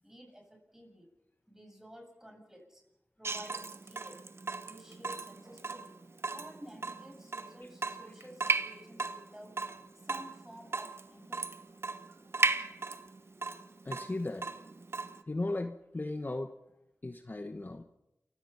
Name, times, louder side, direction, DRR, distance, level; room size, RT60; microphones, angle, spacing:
voice 1, 0.0-1.1 1.5-2.8 3.2-6.0 6.3-9.6 9.9-11.6, equal, 10° right, 2 dB, 8.0 m, -52 dB
Water tap faucet / Drip, 3.2-15.2, right 3 dB, 55° right, 1.1 m, -36 dB
voice 2, 13.8-14.5 15.3-16.5 17.0-17.8, left 2 dB, 40° left, 7 dB, 1.1 m, -36 dB
28.5 x 16.0 x 5.7 m, 0.91 s
cardioid pair, 40°, 5 cm